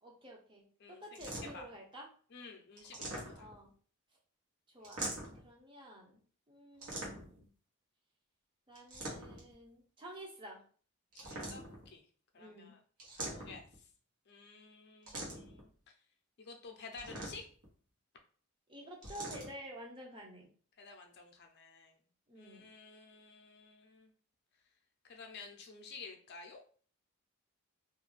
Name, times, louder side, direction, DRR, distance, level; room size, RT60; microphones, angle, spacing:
voice 1, 0.0-2.1 3.3-3.7 4.7-7.5 8.7-10.6 12.4-12.8 18.7-20.5 22.3-22.7, equal, 20° right, -1 dB, 0.5 m, -51 dB
voice 2, 0.8-1.7 2.3-3.5 11.1-12.0 12.3-12.8 13.1-13.7 14.3-15.7 16.4-17.5 20.8-22.0 22.3-24.1 25.0-26.6, left 4 dB, 50° left, 3 dB, 0.5 m, -52 dB
sound 1, 1.1-1.7 2.8-3.7 4.8-5.5 6.8-7.4 8.7-9.5 11.1-11.9 13.0-13.8 15.1-15.6 16.9-17.7 19.0-19.5, right 1 dB, 80° right, 1.0 m, -43 dB
2.4 x 2.2 x 3.1 m, 0.43 s
head